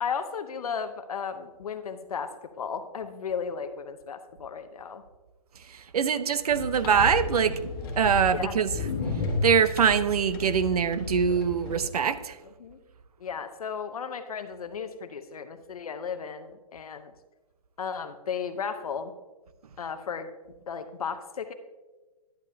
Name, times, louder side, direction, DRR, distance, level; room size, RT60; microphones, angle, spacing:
voice 1, 0.0-5.0 8.3-8.5 12.6-12.8 13.2-17.1 17.8-19.1 19.8-20.3 20.7-21.5, left 6 dB, 65° left, 9 dB, 0.7 m, -34 dB
voice 2, 5.7-8.9 9.4-12.4, right 7 dB, 70° right, 13 dB, 0.6 m, -24 dB
sound 1, 6.5-11.8, left 3 dB, 35° left, 1.6 m, -33 dB
10.5 x 8.4 x 2.7 m, 1.2 s
hypercardioid pair, 180°, 20 cm